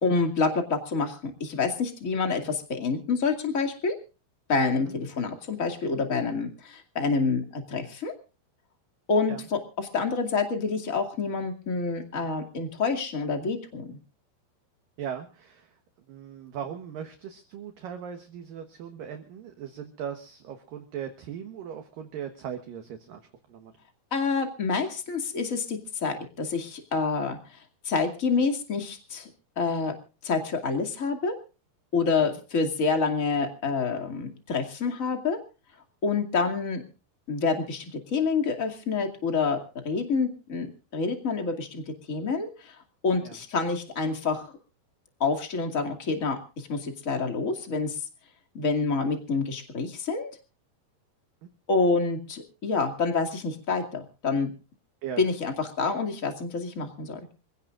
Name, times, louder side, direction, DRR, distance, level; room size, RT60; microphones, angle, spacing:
voice 1, 0.0-3.9 4.5-8.1 9.1-14.0 24.1-27.6 27.8-29.3 29.6-30.0 30.2-31.3 31.9-35.4 36.0-36.8 37.3-42.8 43.0-44.5 45.2-48.0 48.5-50.3 51.7-54.5 55.2-57.3, left 4 dB, 25° left, 3 dB, 1.8 m, -27 dB
voice 2, 15.0-15.8 16.1-23.2 23.5-23.7 32.2-32.4 43.2-43.4 51.4-51.5 55.0-55.2, right 8 dB, 65° right, 6 dB, 2.5 m, -39 dB
27.0 x 16.5 x 2.5 m, 0.35 s
omnidirectional pair, 4.9 m